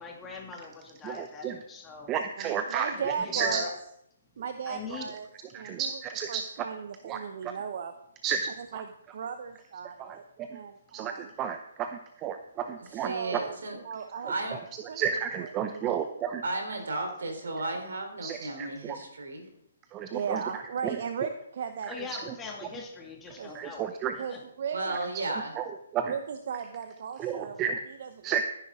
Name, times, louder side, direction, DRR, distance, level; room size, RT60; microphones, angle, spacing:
voice 1, 0.0-2.2 2.9-3.8 4.7-5.1 21.9-24.4, left 4 dB, 15° left, 0 dB, 2.3 m, -41 dB
voice 2, 1.0-1.5 2.1-2.9 3.3-3.6 5.5-6.4 7.1-7.5 8.2-8.5 10.0-10.5 10.9-13.4 14.5-14.6 15.0-16.4 18.2-19.0 19.9-20.4 20.8-21.0 23.5-24.1 25.6-25.7 25.9-26.1 27.2-27.8 28.2-28.4, right 8 dB, 25° right, 8 dB, 0.7 m, -32 dB
voice 3, 2.4-3.7 4.4-5.3 5.5-6.0 6.3-7.9 8.6-10.2 10.5-11.3 13.0-14.3 14.9-15.0 15.4-16.0 20.1-22.1 23.4-23.5 24.2-25.0 26.0-27.6 28.0-28.4, right 6 dB, 55° right, 8 dB, 0.8 m, -36 dB
voice 4, 12.9-13.8 14.2-14.6 16.4-19.5 24.7-25.6, right 2 dB, 70° right, 4 dB, 3.7 m, -34 dB
14.0 x 10.0 x 3.7 m, 0.79 s
figure-of-eight pair, 135°, 0 cm